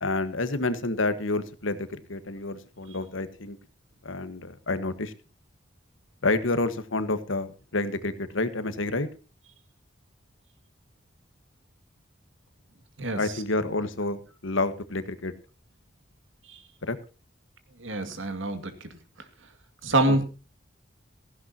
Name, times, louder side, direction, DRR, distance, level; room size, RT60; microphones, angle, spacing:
voice 1, 0.0-3.6 4.0-5.1 6.2-9.1 13.1-15.3 16.8-17.0 20.1-20.2, left 2 dB, 90° left, 12 dB, 1.4 m, -29 dB
voice 2, 17.8-18.9 19.8-20.2, right 2 dB, 85° right, 9 dB, 2.2 m, -26 dB
16.5 x 15.0 x 2.8 m, 0.32 s
head